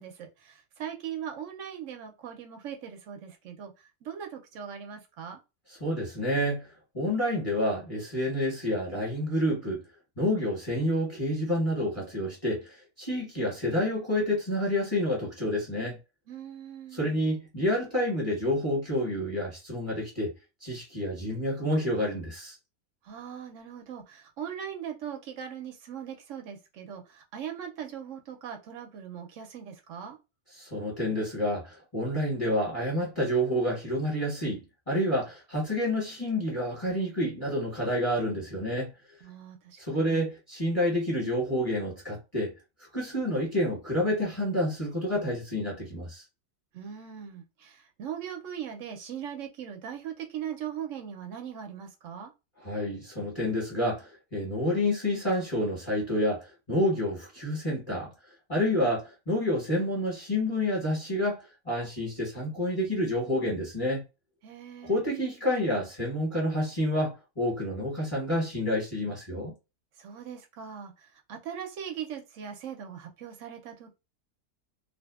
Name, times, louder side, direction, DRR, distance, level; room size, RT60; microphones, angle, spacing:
voice 1, 0.0-5.4 16.3-17.2 23.0-30.2 39.2-40.3 46.7-52.3 64.4-65.0 70.0-74.0, right 8 dB, 70° right, 0.7 m, -40 dB
voice 2, 5.8-9.8 10.2-16.0 16.9-20.3 20.6-22.6 30.6-38.9 39.8-42.5 42.9-46.2 52.6-58.1 58.5-64.0 64.8-69.5, left 1 dB, 25° left, 1.0 m, -29 dB
2.6 x 2.4 x 2.3 m
omnidirectional pair, 1.7 m